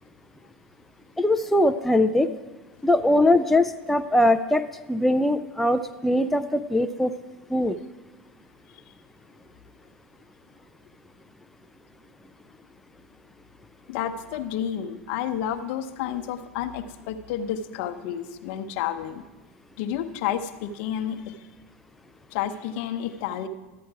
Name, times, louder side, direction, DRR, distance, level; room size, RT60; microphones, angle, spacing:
voice 1, 1.2-2.3 2.8-4.6 4.9-7.1 7.5-7.8, left 1 dB, 5° left, 9 dB, 0.4 m, -21 dB
voice 2, 13.9-19.2 19.8-21.4 22.3-23.5, left 10 dB, 60° left, 7 dB, 0.8 m, -30 dB
12.5 x 8.6 x 4.7 m, 1.2 s
hypercardioid pair, 95°, 7 cm